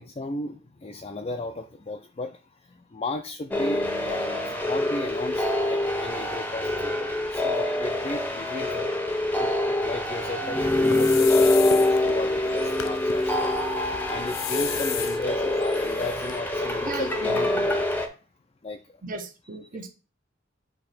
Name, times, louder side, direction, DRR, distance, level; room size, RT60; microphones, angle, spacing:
voice 1, 0.0-9.0 9.4-13.6 14.0-18.2 18.6-19.0, left 2 dB, 30° left, 4 dB, 0.5 m, -35 dB
sound 1, 3.5-18.1, left 1 dB, 10° left, 0.8 m, -25 dB
sound 2, 10.6-16.4, left 9 dB, 80° left, 0.6 m, -36 dB
voice 2, 16.8-17.7 19.0-19.9, right 3 dB, 40° right, 5 dB, 1.0 m, -36 dB
8.5 x 3.0 x 4.4 m, 0.35 s
head